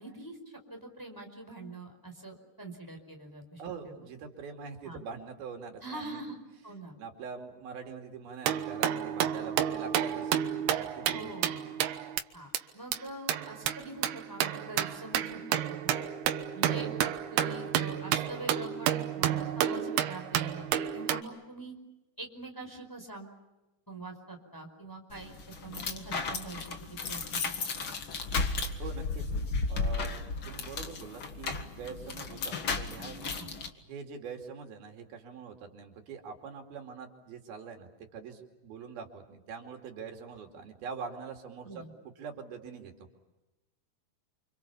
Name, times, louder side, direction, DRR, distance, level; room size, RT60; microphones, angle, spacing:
voice 1, 0.0-4.1 4.8-5.0 5.8-6.4 6.6-7.0 11.0-11.8 12.3-16.0 16.5-21.8 22.2-23.4 23.9-25.3 25.6-27.6 33.4-33.5 41.6-41.9, right 2 dB, 5° left, 3 dB, 4.4 m, -44 dB
voice 2, 3.6-6.2 7.0-10.3 10.8-11.3 28.8-29.4 29.7-33.3 33.8-41.8 42.2-43.1, right 5 dB, 75° right, 4 dB, 4.4 m, -44 dB
sound 1, 8.5-12.2 12.6-12.7 12.9-13.0 13.3-21.2, right 10 dB, 90° right, 3.2 m, -31 dB
sound 2, 25.1-33.7, left 4 dB, 40° left, 2.1 m, -34 dB
29.5 x 26.5 x 7.1 m, 1.0 s
omnidirectional pair, 4.4 m